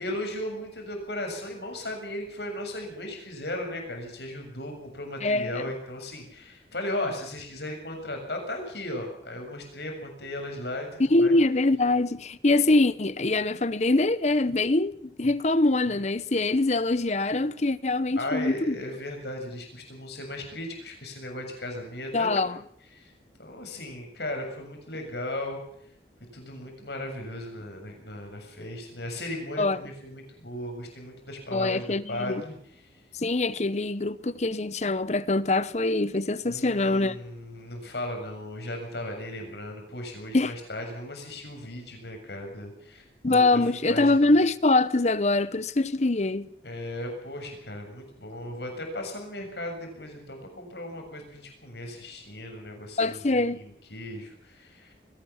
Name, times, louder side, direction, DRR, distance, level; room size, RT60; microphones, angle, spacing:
voice 1, 0.0-11.3 18.2-22.4 22.9-23.1 23.4-25.6 26.2-32.6 36.4-44.4 46.6-54.9, left 1 dB, 70° left, 7.3 m, -36 dB
voice 2, 5.2-5.5 11.1-18.8 22.1-22.6 29.6-29.8 31.5-32.4 33.2-37.2 40.3-40.5 43.2-46.5 53.0-53.6, left 2 dB, 40° left, 0.8 m, -24 dB
22.0 x 17.5 x 7.3 m
head